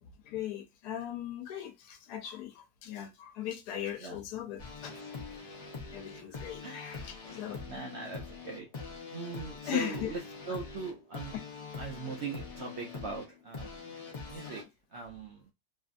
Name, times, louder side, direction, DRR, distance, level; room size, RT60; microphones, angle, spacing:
voice 1, 0.0-5.0 5.9-7.6 9.7-10.1 14.6-14.7, left 11 dB, 70° left, 1.2 m, -39 dB
sound 1, 4.6-14.6, left 4 dB, 55° left, 0.4 m, -43 dB
voice 2, 6.3-6.8 7.7-8.7 9.1-10.2 10.5-11.3 11.8-14.6 14.9-15.4, right 4 dB, 75° right, 0.6 m, -41 dB
2.9 x 2.6 x 2.4 m
omnidirectional pair, 1.8 m